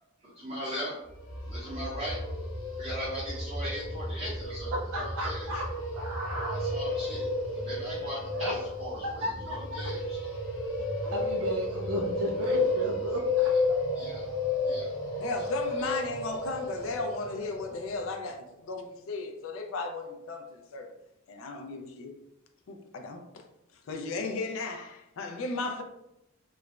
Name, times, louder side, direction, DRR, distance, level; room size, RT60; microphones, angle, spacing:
voice 1, 0.2-1.0 1.5-2.2 2.8-5.5 6.5-10.2 11.4-11.5 13.5-13.6 13.9-14.3 14.6-14.9 15.8-16.0, equal, 30° right, -9 dB, 0.7 m, -39 dB
sound 1, 1.1-18.1, left 2 dB, 90° left, 0.8 m, -32 dB
voice 2, 4.9-5.6 5.9-6.7 8.3-8.5 9.2-9.8 11.0-13.5, left 1 dB, 70° right, -1 dB, 0.4 m, -34 dB
voice 3, 15.2-20.9 21.3-22.1 22.7-23.4 23.9-25.8, left 3 dB, 65° left, 4 dB, 0.4 m, -35 dB
3.1 x 2.0 x 2.3 m, 0.88 s
head